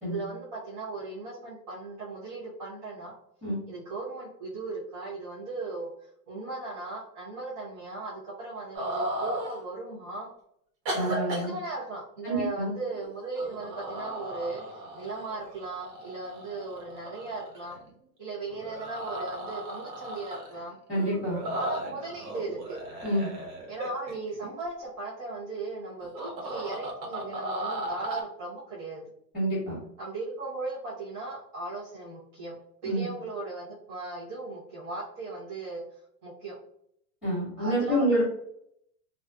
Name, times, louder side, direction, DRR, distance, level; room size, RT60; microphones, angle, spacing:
voice 1, 0.0-3.1 3.7-10.3 11.0-14.6 14.9-17.8 18.2-20.8 21.6-22.8 23.7-29.0 30.0-32.5 32.8-36.5 37.6-38.2, right 3 dB, 30° right, -10 dB, 0.6 m, -37 dB
sound 1, 8.7-9.6 10.8-11.5 12.9-13.0 13.4-17.9 18.5-20.6 20.9-24.5 26.0-28.2, right 1 dB, 85° right, 1.0 m, -36 dB
voice 2, 10.9-11.5 12.2-12.7 20.9-21.4 23.0-23.3 29.3-29.8 32.8-33.1 37.2-38.2, right 1 dB, ahead, -8 dB, 1.1 m, -27 dB
2.4 x 2.3 x 2.2 m, 0.72 s
supercardioid pair, 170°, 50 cm